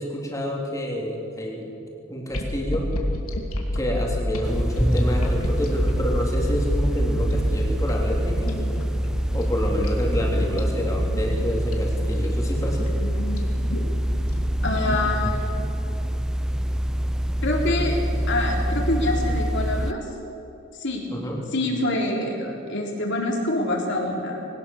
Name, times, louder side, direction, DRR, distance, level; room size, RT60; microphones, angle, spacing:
voice 1, 0.0-1.7 2.1-2.9 3.7-8.6 9.3-12.9 21.1-21.4, equal, 15° left, -1 dB, 3.3 m, -28 dB
sound 1, 2.3-15.4, equal, 90° left, 2.8 m, -29 dB
sound 2, 4.4-19.9, equal, 5° right, 0.4 m, -25 dB
voice 2, 14.6-15.4 17.4-18.0 18.3-20.1 20.7-21.1 21.5-24.5, left 1 dB, 55° left, 0 dB, 3.8 m, -26 dB
21.0 x 19.0 x 7.2 m, 3.0 s
head